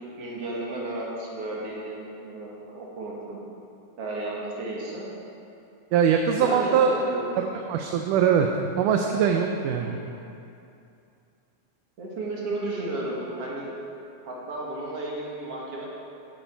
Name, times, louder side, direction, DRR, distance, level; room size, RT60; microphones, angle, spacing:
voice 1, 0.2-3.4 4.0-5.1 6.4-7.3 9.8-10.0 12.0-13.7 14.2-15.9, right 2 dB, 50° right, -4 dB, 2.6 m, -33 dB
voice 2, 5.9-7.0 7.4-8.5 8.8-10.0, right 7 dB, 80° right, 3 dB, 2.2 m, -22 dB
13.0 x 9.3 x 4.6 m, 2.6 s
omnidirectional pair, 3.7 m